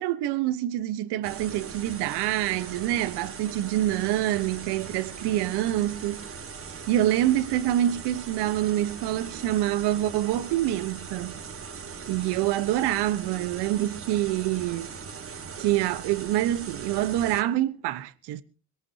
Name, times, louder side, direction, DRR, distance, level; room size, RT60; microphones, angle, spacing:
voice 1, 0.0-6.3 6.9-11.3 12.1-14.9 15.6-18.4, right 13 dB, 85° right, 1.1 m, -26 dB
sound 1, 1.2-17.4, right 6 dB, 35° right, 1.6 m, -40 dB
22.0 x 18.0 x 2.8 m
cardioid pair, 105°, 39 cm